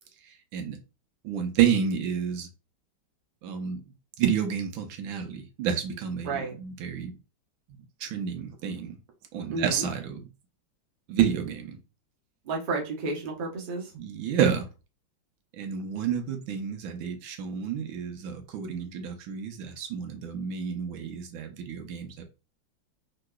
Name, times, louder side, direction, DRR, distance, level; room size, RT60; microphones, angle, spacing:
voice 1, 1.2-2.5 3.4-3.8 4.2-7.1 8.0-9.0 9.3-10.3 11.1-11.8 13.9-14.7 15.6-22.2, right 8 dB, 85° right, 1.5 m, -29 dB
voice 2, 9.5-9.9 12.4-13.9, right 3 dB, 40° right, 0.8 m, -31 dB
3.5 x 2.9 x 2.2 m
omnidirectional pair, 2.1 m